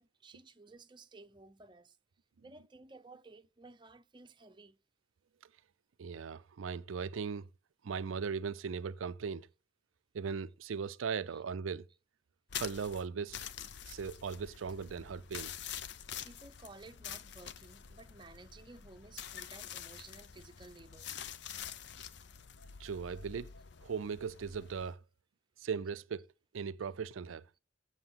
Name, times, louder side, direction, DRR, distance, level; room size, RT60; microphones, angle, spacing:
voice 1, 0.0-2.0 2.4-4.8 10.8-10.9 11.3-11.4 13.5-13.6 14.1-14.2 16.2-21.1, right 3 dB, 25° right, 0.7 m, -55 dB
voice 2, 6.0-7.5 7.8-9.5 10.1-11.8 12.5-13.5 13.9-15.5 22.8-23.5 23.8-25.0 25.6-26.3 26.5-27.4, right 6 dB, 90° right, 0.4 m, -38 dB
sound 1, 12.5-24.9, left 9 dB, 60° left, 0.7 m, -46 dB
7.9 x 7.8 x 5.7 m
head